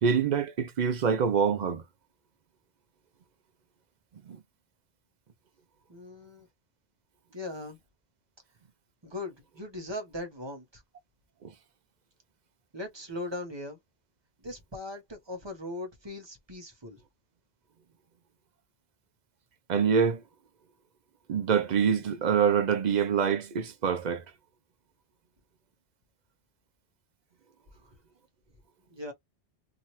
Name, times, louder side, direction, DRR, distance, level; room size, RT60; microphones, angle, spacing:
voice 1, 0.0-1.8 4.3-4.4 11.4-11.5 19.7-20.2 21.3-24.2, right 7 dB, 55° right, 0.6 m, -25 dB
voice 2, 5.9-6.5 7.3-7.8 9.0-10.8 12.7-13.8 14.4-17.0 27.7-27.9 28.9-29.1, left 1 dB, 30° right, 0.9 m, -39 dB
2.8 x 2.5 x 3.0 m
omnidirectional pair, 1.0 m